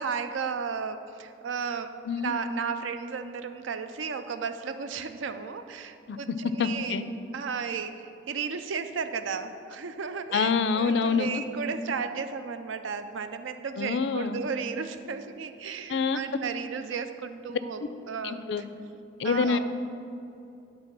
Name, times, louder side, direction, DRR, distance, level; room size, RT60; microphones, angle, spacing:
voice 1, 0.0-7.0 7.3-17.8 18.1-18.7 19.2-19.6, right 5 dB, 85° right, 9 dB, 0.5 m, -34 dB
voice 2, 6.6-7.1 10.3-11.4 13.8-14.5 15.9-16.2 17.8-17.9 18.2-18.6 19.2-19.6, left 5 dB, 65° left, 12 dB, 0.4 m, -26 dB
10.5 x 4.0 x 6.0 m, 2.7 s
head